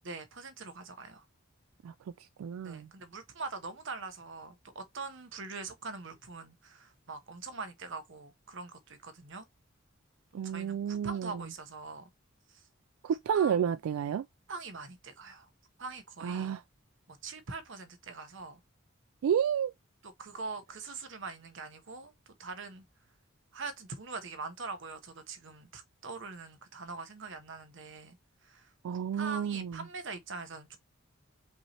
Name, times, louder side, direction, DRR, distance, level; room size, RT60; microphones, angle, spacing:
voice 1, 0.0-1.3 2.6-9.5 10.4-12.1 12.5-12.7 13.3-13.6 14.5-15.5 15.8-16.5 17.1-18.6 20.0-22.8 23.5-28.2 28.4-28.7 29.1-30.8, right 4 dB, 60° right, 0.9 m, -43 dB
voice 2, 2.4-2.9 10.3-11.4 13.0-14.3 16.2-16.6 19.2-19.7 28.8-29.8, right 8 dB, 85° right, 0.3 m, -30 dB
5.3 x 2.9 x 3.0 m
head